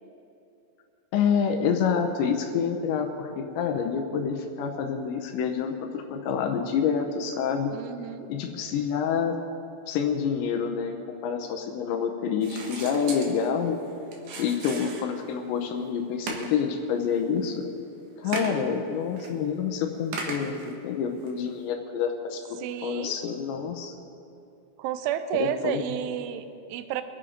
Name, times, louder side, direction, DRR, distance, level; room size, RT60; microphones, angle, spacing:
voice 1, 1.1-7.7 8.3-9.4 9.9-13.8 14.4-17.6 18.2-23.9 25.3-25.8, left 7 dB, 75° left, 4 dB, 2.9 m, -27 dB
voice 2, 7.7-8.3 18.4-18.7 22.6-23.2 24.8-27.0, right 10 dB, 80° right, 11 dB, 3.0 m, -31 dB
sound 1, 12.4-15.4 15.8-15.9 16.3-16.8 17.1-17.5 18.3-18.6 19.2-19.3 20.1-20.7 21.3-21.4, right 3 dB, 65° right, 2.0 m, -37 dB
24.5 x 8.6 x 5.0 m, 2.7 s
omnidirectional pair, 5.6 m